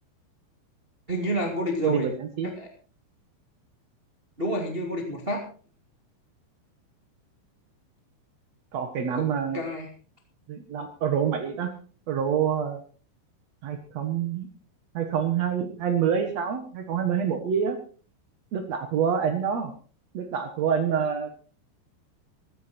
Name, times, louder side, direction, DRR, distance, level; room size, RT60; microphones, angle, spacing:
voice 1, 1.1-2.1 2.4-2.7 4.4-5.4 9.1-9.2 9.5-9.9, equal, 30° right, 2 dB, 1.1 m, -29 dB
voice 2, 1.8-2.5 8.7-9.6 10.5-11.7 12.1-12.8 13.6-14.5 14.9-17.8 18.5-19.7 20.1-21.3, right 7 dB, 85° right, 6 dB, 1.5 m, -27 dB
15.0 x 14.0 x 4.4 m, 0.40 s
omnidirectional pair, 5.5 m